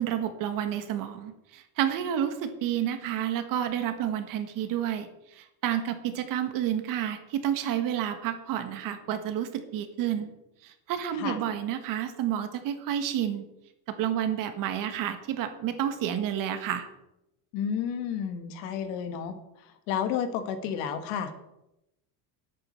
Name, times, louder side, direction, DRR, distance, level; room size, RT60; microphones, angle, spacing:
voice 1, 0.0-10.3 10.6-13.4 13.9-16.9, right 10 dB, 45° right, 8 dB, 1.5 m, -30 dB
voice 2, 17.5-19.4 19.6-21.3, left 8 dB, 65° left, 8 dB, 1.8 m, -31 dB
11.0 x 8.8 x 6.6 m, 0.89 s
cardioid pair, 170°, 46 cm